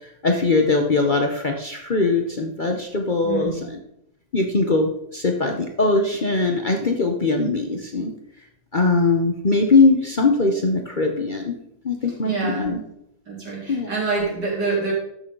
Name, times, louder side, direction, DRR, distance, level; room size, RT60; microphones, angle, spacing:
voice 1, 0.2-3.8 4.3-8.1 8.7-11.5 11.8-12.8 13.7-13.9, left 3 dB, 40° left, 3 dB, 0.8 m, -21 dB
voice 2, 3.2-3.6 12.2-12.7 13.3-14.9, right 3 dB, 85° right, -5 dB, 4.3 m, -26 dB
13.5 x 6.4 x 3.8 m, 0.76 s
omnidirectional pair, 1.8 m